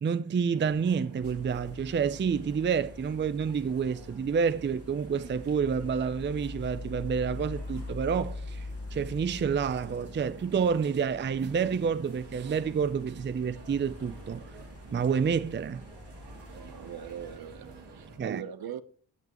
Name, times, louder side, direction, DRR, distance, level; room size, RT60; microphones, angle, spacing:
voice 1, 0.0-14.6 14.9-15.8 18.2-18.4, right 6 dB, 30° right, 0.5 m, -29 dB
sound 1, 0.5-18.2, right 3 dB, 90° right, 2.9 m, -50 dB
sound 2, 1.2-17.4, left 2 dB, 35° left, 1.8 m, -44 dB
voice 2, 16.6-18.8, right 9 dB, 65° right, 0.9 m, -41 dB
16.5 x 5.9 x 3.0 m
cardioid pair, 85°, 40 cm